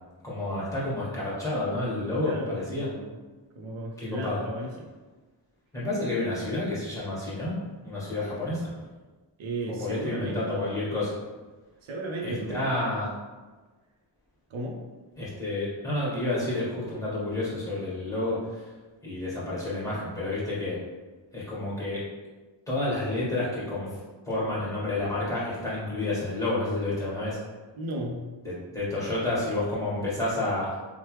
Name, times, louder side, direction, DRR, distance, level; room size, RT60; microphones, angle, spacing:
voice 1, 0.2-2.9 4.0-4.4 5.7-8.7 9.7-11.2 12.2-13.1 15.2-18.7 19.0-20.8 21.3-22.0 22.7-24.0 24.2-27.4 28.4-30.8, left 2 dB, 5° left, -8 dB, 1.3 m, -30 dB
voice 2, 2.2-3.2 3.5-4.9 9.4-10.4 11.8-12.7 14.5-14.8 27.8-28.2, right 1 dB, 90° right, 0 dB, 0.6 m, -34 dB
3.1 x 2.1 x 3.1 m, 1.3 s
wide cardioid pair, 70°, 46 cm